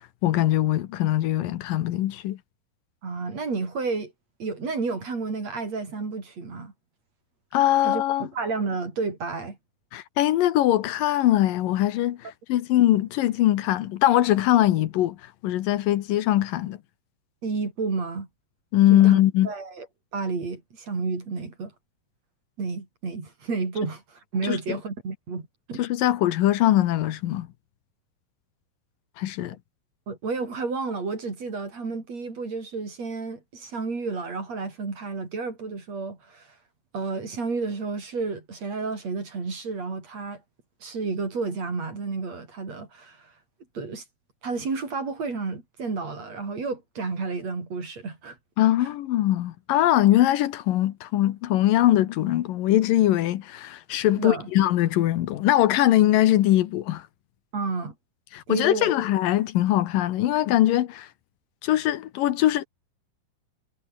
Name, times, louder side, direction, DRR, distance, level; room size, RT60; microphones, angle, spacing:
voice 1, 0.2-2.4 7.5-8.3 9.9-15.2 15.4-16.8 18.7-19.5 24.4-24.6 25.8-27.5 29.2-29.6 48.6-57.1 58.3-61.1 61.6-62.6, left 13 dB, 80° left, 2.8 m, -21 dB
voice 2, 3.0-4.1 4.4-6.7 7.8-9.6 17.4-18.3 18.9-19.9 20.1-21.7 22.6-25.8 30.1-36.5 36.9-40.4 40.8-43.3 43.7-44.0 44.4-48.4 48.8-48.9 54.2-54.5 57.5-57.9 58.5-58.9, right 4 dB, 50° right, 6.2 m, -31 dB
omnidirectional pair, 4.0 m